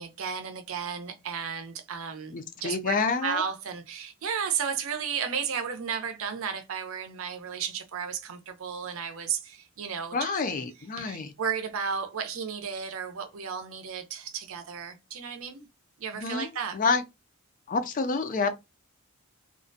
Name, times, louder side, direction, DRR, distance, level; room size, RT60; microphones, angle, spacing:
voice 1, 0.0-2.3 2.6-10.3 11.1-15.7 16.0-16.8, right 7 dB, 65° right, 0.5 m, -33 dB
voice 2, 2.3-3.4 10.1-11.3 16.1-16.5 16.7-17.0 17.7-18.6, left 4 dB, 35° left, 0.3 m, -28 dB
2.3 x 2.1 x 2.5 m
head